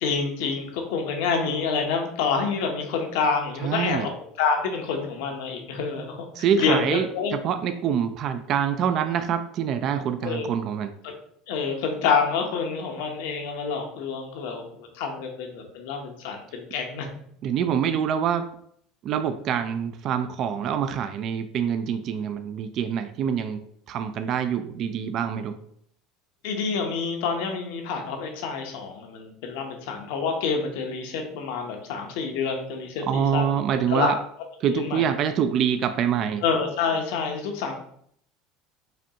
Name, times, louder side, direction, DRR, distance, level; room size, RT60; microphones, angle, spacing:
voice 1, 0.0-4.1 4.4-7.3 10.2-10.5 11.0-11.1 11.5-17.1 26.4-33.4 33.9-34.2 34.7-35.1 36.4-37.7, left 5 dB, 75° left, 3 dB, 0.8 m, -27 dB
voice 2, 3.6-4.1 6.4-10.9 17.4-18.6 19.0-23.6 23.9-25.6 33.1-34.2 34.6-36.4, right 8 dB, 45° right, 9 dB, 0.3 m, -25 dB
5.0 x 2.3 x 2.8 m, 0.66 s
supercardioid pair, 130°, 0 cm